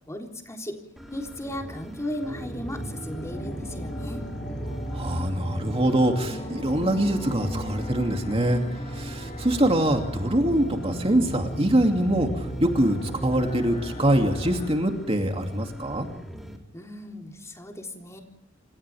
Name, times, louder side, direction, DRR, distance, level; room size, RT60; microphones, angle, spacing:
voice 1, 0.1-0.8 1.1-4.2 16.7-18.2, left 1 dB, 15° left, 2 dB, 3.8 m, -36 dB
sound 1, 1.0-16.6, equal, ahead, 4.0 m, -42 dB
sound 2, 2.2-14.7, right 1 dB, 30° left, 7.3 m, -35 dB
voice 2, 4.9-8.6 8.9-16.1, right 1 dB, 30° right, 3 dB, 2.7 m, -24 dB
28.0 x 28.0 x 3.5 m, 0.71 s
head